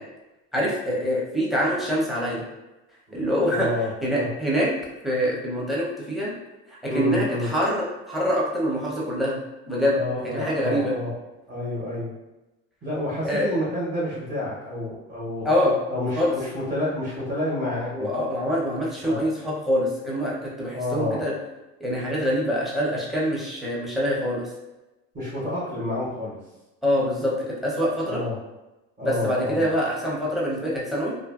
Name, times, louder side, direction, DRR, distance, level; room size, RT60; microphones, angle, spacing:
voice 1, 0.5-2.4 3.1-3.7 4.0-4.7 5.0-6.3 6.7-9.4 9.7-10.9 13.2-13.5 15.4-15.8 16.2-16.3 17.9-21.3 21.8-24.5 26.8-28.2 29.0-31.1, equal, ahead, -5 dB, 0.6 m, -25 dB
voice 2, 3.5-4.3 6.8-7.5 9.9-11.1 11.5-12.1 12.8-15.5 15.9-18.1 19.0-19.2 20.7-21.2 25.1-26.4 28.0-28.4 29.0-29.7, left 1 dB, 30° right, -7 dB, 0.9 m, -29 dB
2.6 x 2.5 x 2.4 m, 1.0 s
cardioid pair, 130°, 32 cm